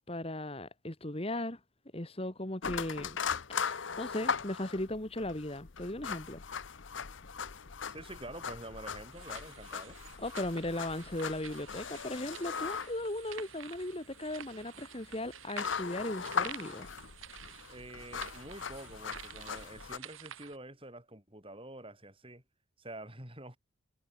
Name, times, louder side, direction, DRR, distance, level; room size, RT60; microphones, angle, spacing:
voice 1, 0.0-1.6 1.9-3.2 3.6-6.4 10.2-16.9, left 1 dB, 30° left, 1.9 m, -37 dB
sound 1, 2.6-20.0, left 6 dB, 65° left, 0.9 m, -39 dB
voice 2, 7.9-10.0 17.7-22.4 22.8-23.6, right 1 dB, 25° right, 6.3 m, -47 dB
sound 2, 9.1-20.6, right 9 dB, 75° right, 1.9 m, -50 dB
head